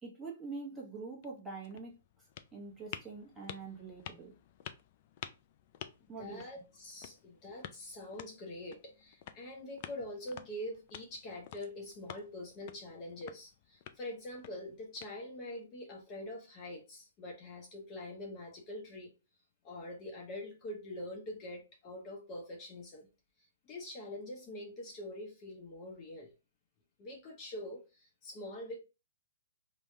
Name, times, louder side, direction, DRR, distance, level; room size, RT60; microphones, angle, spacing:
voice 1, 0.0-2.0 2.5-4.4 6.1-6.5, right 4 dB, 10° right, 1.0 m, -44 dB
sound 1, 1.0-15.6, left 10 dB, 45° left, 0.3 m, -51 dB
voice 2, 6.2-19.1 19.6-23.1 23.7-26.3 27.0-28.8, left 1 dB, 30° left, 0.8 m, -44 dB
3.4 x 2.2 x 2.7 m
hypercardioid pair, 145°, 0 cm